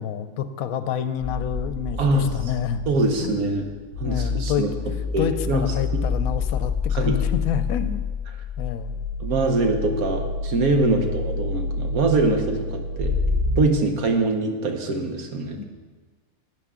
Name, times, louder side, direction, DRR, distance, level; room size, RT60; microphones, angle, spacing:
voice 1, 0.0-2.8 3.2-3.3 4.0-8.0 8.6-9.0 10.7-11.1 15.6-15.7, left 8 dB, 80° left, 10 dB, 1.0 m, -28 dB
sound 1, 1.2-13.6, left 4 dB, 60° right, 2.3 m, -28 dB
voice 2, 2.0-2.5 2.9-3.7 4.0-4.7 5.1-6.0 6.9-7.2 9.2-13.2 13.6-15.6, right 2 dB, 75° right, 4 dB, 1.5 m, -23 dB
11.5 x 8.3 x 3.7 m, 1.3 s
omnidirectional pair, 1.5 m